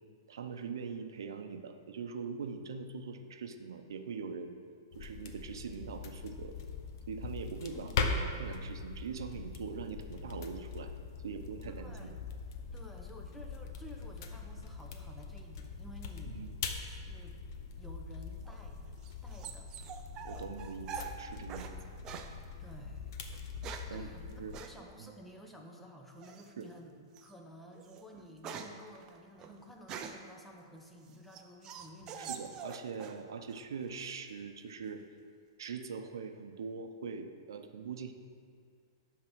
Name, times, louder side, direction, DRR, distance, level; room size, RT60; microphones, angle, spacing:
voice 1, 0.3-4.6 4.9-6.5 7.1-10.9 11.2-12.1 16.2-16.6 20.2-21.8 23.9-24.5 25.0-25.1 26.6-26.7 32.2-35.0 35.6-38.1, right 5 dB, 85° right, 7 dB, 0.7 m, -42 dB
sound 1, 4.9-24.6, left 4 dB, 55° left, 0.9 m, -41 dB
voice 2, 7.7-8.1 11.8-12.2 12.7-16.5 16.8-17.4 17.8-18.9 19.2-19.7 22.6-23.2 23.9-32.4, equal, 5° left, 1 dB, 0.8 m, -53 dB
sound 2, 18.5-21.7 22.0-22.3 23.3-24.0 24.5-24.7 26.2-26.6 27.1-27.3 27.7-30.3 30.9-33.2 33.5-34.1, right 7 dB, 25° right, 0.6 m, -45 dB
10.5 x 3.7 x 6.2 m, 2.1 s
hypercardioid pair, 145°, 2 cm